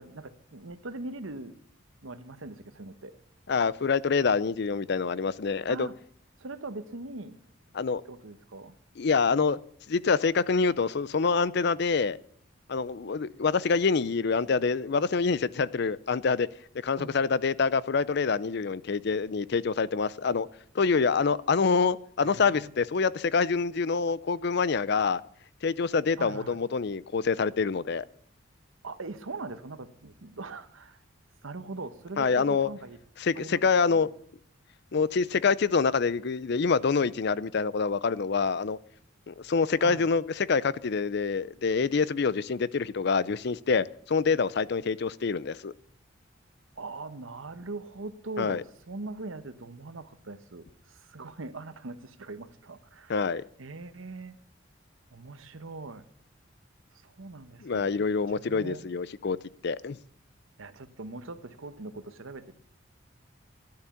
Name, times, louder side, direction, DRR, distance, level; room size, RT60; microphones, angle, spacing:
voice 1, 0.0-1.6 2.0-3.2 5.7-6.0 6.4-7.4 8.0-8.8 16.9-17.2 22.2-22.7 26.2-26.6 28.8-31.0 31.4-33.0 33.3-33.6 33.9-34.1 39.8-40.1 46.8-53.2 53.6-54.4 55.1-56.0 56.9-58.9 60.6-62.5, right 3 dB, 90° right, 1.1 m, -41 dB
voice 2, 3.5-5.9 7.7-8.0 9.0-9.6 9.9-12.2 12.7-16.5 16.8-20.5 20.7-25.2 25.6-28.0 32.2-32.7 33.2-34.1 34.9-38.8 39.3-45.7 48.4-48.6 53.1-53.4 57.6-59.4 59.6-60.0, left 5 dB, 55° left, 0.5 m, -26 dB
12.5 x 10.5 x 7.1 m
head